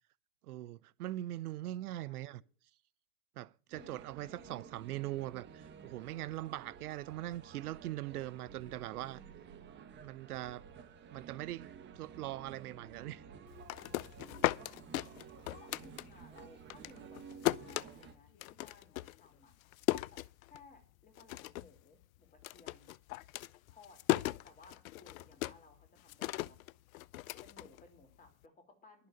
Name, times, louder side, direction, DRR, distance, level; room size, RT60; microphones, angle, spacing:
voice 1, 0.4-2.4 3.4-9.2 10.0-10.7 11.1-13.2, right 15 dB, 70° right, 0.6 m, -41 dB
voice 2, 1.6-2.5 3.7-4.8 10.8-11.4 14.5-19.5 19.9-22.9 23.7-24.0 24.4-26.6 27.4-29.1, left 3 dB, 15° left, 3.3 m, -60 dB
sound 1, 3.7-18.1, right 7 dB, 25° right, 1.2 m, -53 dB
sound 2, 13.5-16.4 16.7-20.8 21.2-21.8 22.0-28.3, left 17 dB, 60° left, 0.5 m, -37 dB
11.0 x 6.8 x 8.9 m
hypercardioid pair, 120°, 46 cm